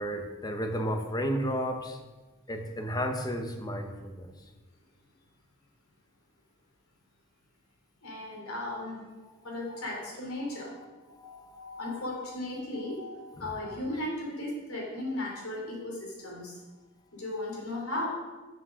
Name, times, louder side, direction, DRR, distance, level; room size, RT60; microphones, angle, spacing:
voice 1, 0.0-2.0 2.5-4.3 9.2-9.3 9.7-11.9 12.5-13.6, equal, 20° left, 5 dB, 0.9 m, -35 dB
voice 2, 8.0-9.0 9.4-10.7 11.2-16.6 17.1-18.1, left 1 dB, 70° left, -3 dB, 3.1 m, -36 dB
7.4 x 6.2 x 6.3 m, 1.2 s
head